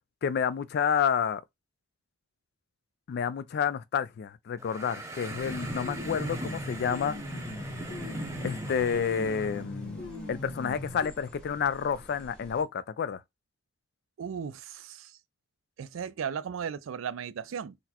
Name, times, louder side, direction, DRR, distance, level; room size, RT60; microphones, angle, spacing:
voice 1, 0.2-1.4 3.1-7.2 8.4-13.2, left 7 dB, 55° left, 0.3 m, -29 dB
sound 1, 4.6-9.6, right 1 dB, 15° right, 0.6 m, -39 dB
sound 2, 5.3-12.6, equal, 5° left, 1.0 m, -51 dB
sound 3, 5.5-11.1, left 1 dB, 70° left, 1.1 m, -40 dB
voice 2, 14.2-15.2 15.8-17.8, right 7 dB, 85° right, 0.4 m, -36 dB
4.0 x 2.1 x 2.8 m
head